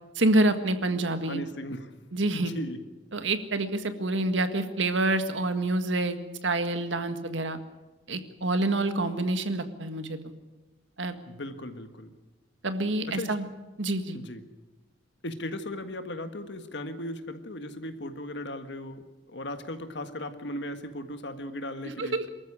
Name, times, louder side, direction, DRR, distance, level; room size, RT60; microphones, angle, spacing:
voice 1, 0.1-1.4 2.1-2.5 3.1-6.2 6.4-7.6 8.1-10.2 11.0-11.1 12.6-13.4 13.8-14.2 22.0-22.2, right 2 dB, 85° right, 9 dB, 1.8 m, -27 dB
voice 2, 1.2-1.9 2.3-2.8 11.3-12.1 13.1-13.3 14.1-14.4 15.2-22.2, left 1 dB, 65° left, 8 dB, 1.7 m, -37 dB
23.5 x 13.5 x 10.0 m, 1.1 s
head